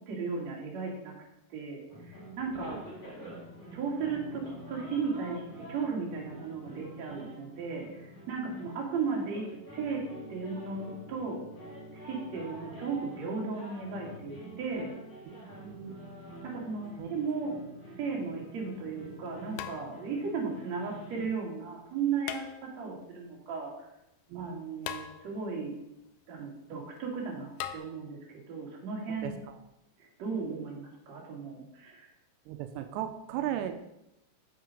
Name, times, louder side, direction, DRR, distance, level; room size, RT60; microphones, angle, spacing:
voice 1, 0.1-1.1 1.5-2.8 3.7-4.4 4.7-5.4 5.7-10.0 10.3-11.4 11.9-14.9 16.4-17.5 18.0-22.5 22.8-23.7 24.3-25.8 26.3-28.2 28.5-29.3 30.0-32.1, right 5 dB, 45° right, -2 dB, 3.1 m, -35 dB
sound 1, 1.9-21.2, right 1 dB, 30° left, 4.9 m, -47 dB
voice 2, 15.3-16.0 17.0-17.1 24.3-24.6 29.1-29.6 30.4-30.6 32.5-34.0, right 10 dB, 90° right, 8 dB, 2.8 m, -37 dB
sound 2, 18.2-18.3 19.6-20.3 22.2-23.0 24.8-25.6 27.6-27.8, left 10 dB, 80° left, 2.2 m, -40 dB
8.3 x 7.5 x 5.3 m, 0.86 s
omnidirectional pair, 4.8 m